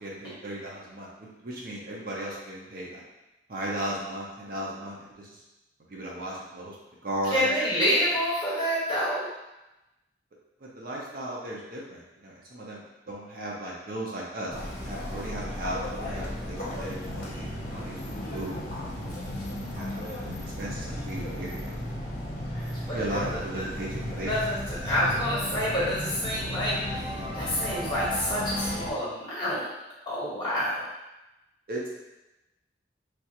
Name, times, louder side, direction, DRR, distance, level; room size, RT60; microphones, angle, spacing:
voice 1, 0.0-3.0 3.5-5.4 5.9-6.7 7.0-7.5 10.6-18.9 19.5-21.8 22.9-24.3 31.7-31.9, right 1 dB, 55° right, -4 dB, 0.6 m, -36 dB
voice 2, 7.2-9.3 22.5-23.4 24.1-24.6 24.8-26.8 27.3-29.7 30.1-30.8, equal, 25° left, -10 dB, 1.3 m, -28 dB
sound 1, 14.5-28.9, left 1 dB, 55° left, 0.8 m, -34 dB
3.2 x 2.4 x 2.8 m, 0.98 s
head